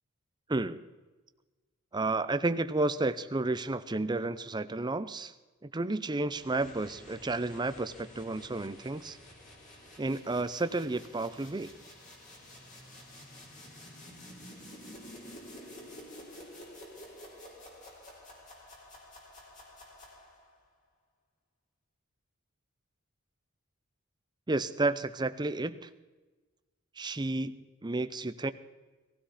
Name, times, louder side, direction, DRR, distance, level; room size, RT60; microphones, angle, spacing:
voice 1, 0.5-0.8 1.9-5.3 5.6-9.2 10.0-11.7 24.5-25.9 27.0-28.5, right 2 dB, 20° right, 12 dB, 0.6 m, -31 dB
sound 1, 6.3-20.6, left 1 dB, 40° left, 3.7 m, -50 dB
18.0 x 16.0 x 4.2 m, 1.2 s
head